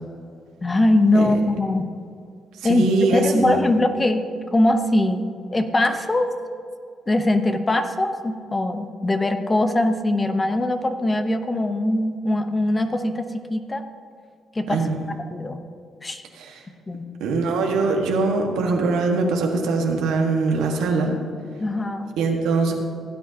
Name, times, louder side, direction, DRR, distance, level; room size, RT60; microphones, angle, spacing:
voice 1, 0.6-1.9 2.6-4.2 4.5-6.3 7.1-13.8 14.5-14.8 15.3-15.6 16.0-16.2 16.9-17.1 21.6-22.1, left 1 dB, 20° left, 7 dB, 0.9 m, -21 dB
voice 2, 2.6-3.7 14.7-15.0 16.3-16.6 17.2-21.2 22.2-22.7, right 3 dB, 90° right, 1 dB, 1.6 m, -22 dB
16.0 x 9.2 x 2.8 m, 2.3 s
cardioid pair, 90°, 0 cm